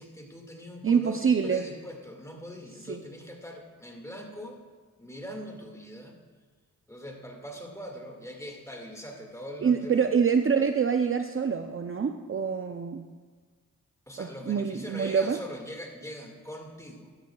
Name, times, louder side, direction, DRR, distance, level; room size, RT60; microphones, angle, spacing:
voice 1, 0.0-4.6 5.0-6.2 6.9-10.1 14.1-17.1, equal, 10° left, 1 dB, 1.9 m, -42 dB
voice 2, 0.8-1.6 2.9-3.0 9.6-13.0 14.2-15.4, right 6 dB, 40° right, 6 dB, 0.5 m, -26 dB
12.5 x 12.5 x 2.3 m, 1.5 s
cardioid pair, 60°, 35 cm